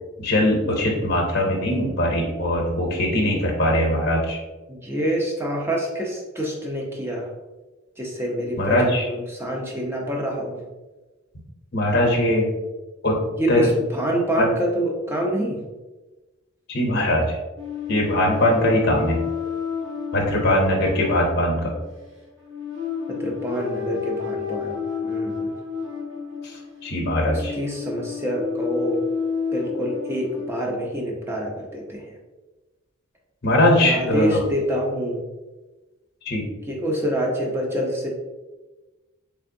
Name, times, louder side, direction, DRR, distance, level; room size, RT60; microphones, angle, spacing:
voice 1, 0.2-4.4 8.6-9.1 11.7-12.5 13.0-13.2 13.5-13.7 14.4-14.5 16.7-17.4 17.9-19.2 20.1-21.7 26.4-27.5 33.4-34.4 36.2-36.5, left 1 dB, 50° left, 0 dB, 0.8 m, -21 dB
voice 2, 4.7-7.3 8.0-10.6 13.4-15.6 23.1-24.8 25.0-25.5 27.3-29.0 29.5-32.1 33.7-35.2 36.7-38.1, equal, 10° right, -1 dB, 0.6 m, -26 dB
sound 1, 17.6-30.5, left 6 dB, 55° right, 0.8 m, -31 dB
3.5 x 3.4 x 2.6 m, 1.2 s
head